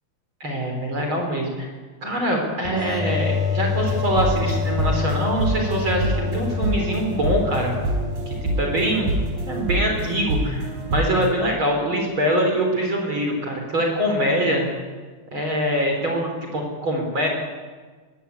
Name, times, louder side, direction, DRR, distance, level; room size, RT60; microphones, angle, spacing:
voice 1, 0.4-1.7 2.0-7.7 8.3-9.1 9.5-14.7 15.3-17.3, equal, 45° right, 2 dB, 4.6 m, -24 dB
sound 1, 2.6-10.1, left 5 dB, ahead, 3.1 m, -28 dB
sound 2, 3.7-11.3, right 2 dB, 75° right, 5.7 m, -26 dB
21.0 x 19.0 x 8.4 m, 1.4 s
omnidirectional pair, 3.3 m